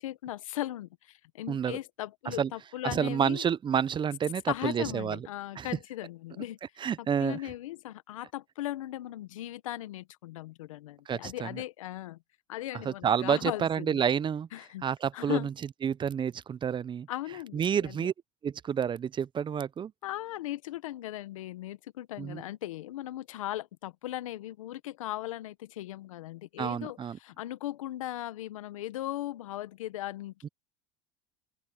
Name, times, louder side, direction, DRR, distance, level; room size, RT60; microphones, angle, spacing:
voice 1, 0.0-3.4 4.5-6.6 7.0-12.2 12.5-14.0 14.5-14.8 15.1-15.5 17.1-18.1 20.0-30.5, left 14 dB, 85° left, 1.4 m, -38 dB
voice 2, 1.5-1.8 2.3-2.5 2.8-5.3 5.6-5.7 6.8-7.5 11.1-11.6 12.8-14.5 14.8-15.5 15.8-17.1 17.5-18.1 18.4-19.9 22.2-22.4 26.6-27.2 30.4-30.5, right 8 dB, 30° right, 0.7 m, -29 dB
open air
hypercardioid pair, 90°, 17 cm